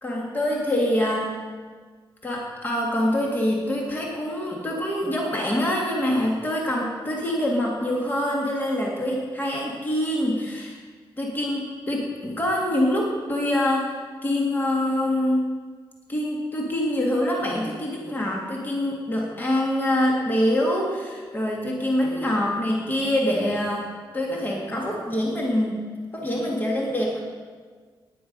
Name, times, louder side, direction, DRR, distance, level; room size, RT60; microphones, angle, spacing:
voice 1, 0.0-1.3 2.2-10.8 11.2-14.0 14.2-15.4 16.1-23.9 24.1-25.9 26.1-27.2, left 1 dB, 20° left, -2 dB, 2.0 m, -25 dB
18.0 x 10.0 x 5.4 m, 1.5 s
wide cardioid pair, 165°, 9 cm